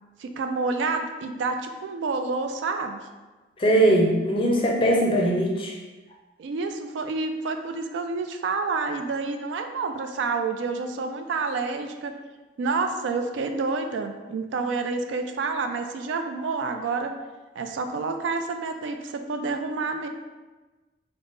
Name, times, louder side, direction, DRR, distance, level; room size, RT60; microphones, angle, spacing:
voice 1, 0.2-3.1 6.4-12.1 12.6-17.1 17.6-20.1, right 4 dB, 80° right, 6 dB, 0.3 m, -28 dB
voice 2, 3.6-5.8, right 1 dB, 30° left, -1 dB, 0.4 m, -20 dB
3.4 x 2.0 x 3.9 m, 1.2 s
head